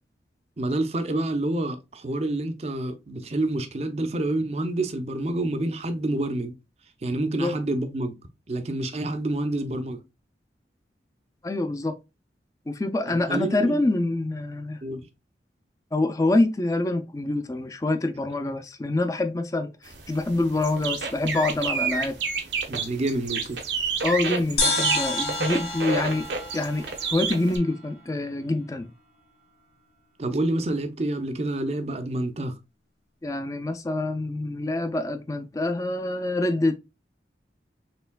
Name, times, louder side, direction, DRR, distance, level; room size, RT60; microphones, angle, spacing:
voice 1, 0.6-6.6 7.0-8.1 8.5-10.0 13.1-13.8 14.8-15.0 22.7-23.6 30.2-32.6, right 2 dB, 35° right, 0.5 m, -28 dB
voice 2, 11.4-12.0 12.7-14.8 15.9-22.2 24.0-26.3 26.5-28.9 33.2-36.7, left 2 dB, 20° left, 0.4 m, -26 dB
sound 1, 19.9-27.6, right 5 dB, 90° right, 1.0 m, -30 dB
sound 2, 24.6-28.1, left 2 dB, 70° left, 2.0 m, -29 dB
4.4 x 3.3 x 2.2 m
head